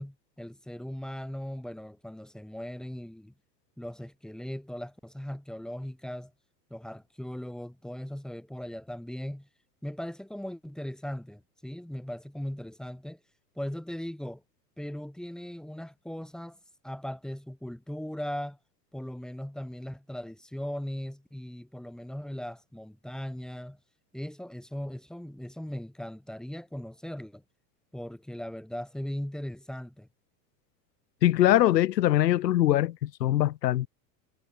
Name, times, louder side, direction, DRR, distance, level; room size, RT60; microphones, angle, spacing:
voice 1, 0.0-3.3 3.8-6.3 6.7-9.5 9.8-13.2 13.6-14.4 14.8-16.6 16.8-18.6 18.9-23.8 24.1-27.4 27.9-30.1, equal, ahead, 2.1 m, -38 dB
voice 2, 31.2-33.9, left 13 dB, 85° left, 1.3 m, -22 dB
hypercardioid pair, 115°, 48 cm